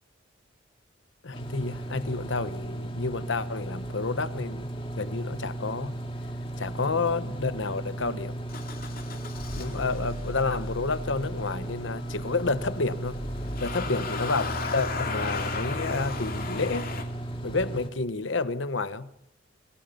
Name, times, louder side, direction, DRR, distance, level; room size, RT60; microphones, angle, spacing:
voice 1, 1.2-4.7 5.0-5.9 6.6-8.4 9.6-13.2 13.6-16.9 17.4-19.1, left 3 dB, 70° left, 1.0 m, -30 dB
sound 1, 1.3-17.9, right 1 dB, 25° left, 2.3 m, -36 dB
Motor vehicle (road) / Engine starting, 8.5-17.0, left 3 dB, 45° left, 2.6 m, -36 dB
26.0 x 18.5 x 5.7 m
head